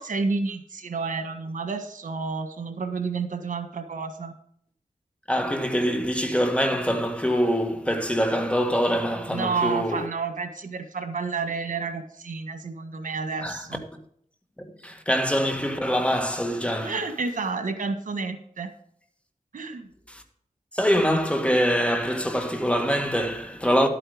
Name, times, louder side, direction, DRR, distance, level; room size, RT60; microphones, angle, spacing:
voice 1, 0.0-4.3 9.3-13.8 16.8-18.7 19.5-19.9, right 4 dB, 90° right, 1.5 m, -30 dB
voice 2, 5.3-10.1 13.4-13.6 14.8-17.0 20.1-20.2 20.7-23.9, equal, 10° left, 1.7 m, -24 dB
12.0 x 8.7 x 5.0 m
wide cardioid pair, 90°, 13 cm